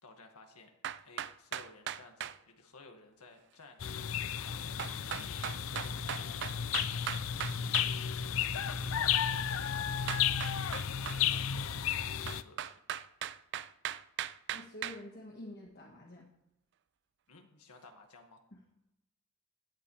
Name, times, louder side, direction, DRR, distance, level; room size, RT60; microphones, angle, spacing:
voice 1, 0.0-0.7 1.0-4.8 5.2-7.2 7.6-10.3 10.7-12.8 17.3-18.4, left 3 dB, 90° left, 4 dB, 1.9 m, -57 dB
sound 1, 0.8-2.4 4.8-7.9 10.1-11.2 12.3-15.0, right 10 dB, 50° right, 0.3 m, -38 dB
sound 2, 3.8-12.4, left 8 dB, 65° left, 0.5 m, -33 dB
voice 2, 14.5-16.3 18.5-18.6, left 1 dB, 45° left, -1 dB, 1.5 m, -48 dB
16.0 x 11.5 x 3.3 m, 0.86 s
head